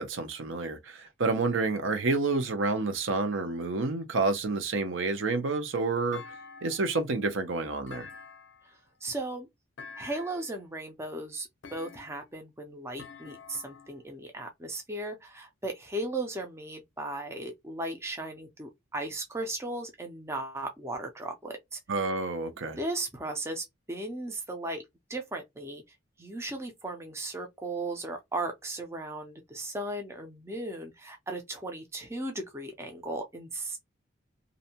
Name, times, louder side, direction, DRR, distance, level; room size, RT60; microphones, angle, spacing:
voice 1, 0.0-6.2 6.6-8.1 21.9-22.8, right 3 dB, 70° right, 0.6 m, -29 dB
Thump thud, 6.1-7.0 7.9-8.8 9.8-10.5 11.6-12.3 13.0-14.0, left 5 dB, 60° left, 0.5 m, -47 dB
voice 2, 8.7-9.5 10.0-21.8 22.8-24.8 25.1-25.8 26.2-33.8, right 2 dB, 15° right, 0.4 m, -36 dB
2.6 x 2.1 x 2.7 m
head